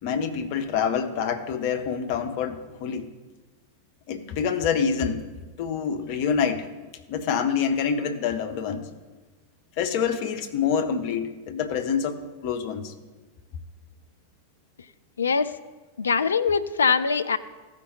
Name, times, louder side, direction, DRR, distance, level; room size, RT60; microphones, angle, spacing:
voice 1, 0.0-3.1 4.1-5.2 5.6-6.7 7.1-8.9 9.8-12.9, left 7 dB, 45° left, 7 dB, 0.8 m, -26 dB
voice 2, 15.2-15.5 16.0-17.4, left 5 dB, 70° left, 13 dB, 0.4 m, -22 dB
14.5 x 5.2 x 4.0 m, 1.3 s
figure-of-eight pair, 90°, 0 cm